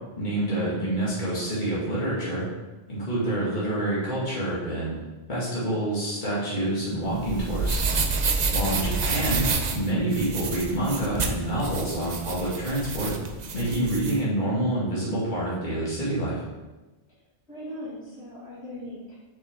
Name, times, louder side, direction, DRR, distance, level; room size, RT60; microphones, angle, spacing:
voice 1, 0.2-2.5 2.9-5.0 5.3-7.8 8.5-9.5 9.7-13.1 13.5-16.4, right 1 dB, 45° left, -8 dB, 2.2 m, -27 dB
sound 1, 7.1-14.2, right 4 dB, 45° right, 0.7 m, -28 dB
voice 2, 17.5-19.2, left 1 dB, 75° left, -7 dB, 2.3 m, -39 dB
6.4 x 6.2 x 3.6 m, 1.2 s
omnidirectional pair, 1.1 m